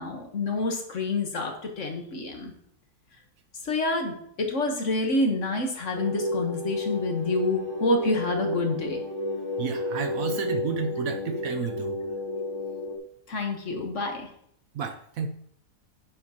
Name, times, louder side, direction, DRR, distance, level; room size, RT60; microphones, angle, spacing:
voice 1, 0.0-2.5 3.6-9.0 13.3-14.3, left 2 dB, 50° left, 3 dB, 1.5 m, -28 dB
sound 1, 5.9-13.0, left 1 dB, 15° left, 1.0 m, -31 dB
voice 2, 9.6-12.0 14.7-15.3, right 6 dB, 65° right, 7 dB, 1.0 m, -31 dB
10.0 x 7.2 x 2.9 m, 0.68 s
omnidirectional pair, 1.8 m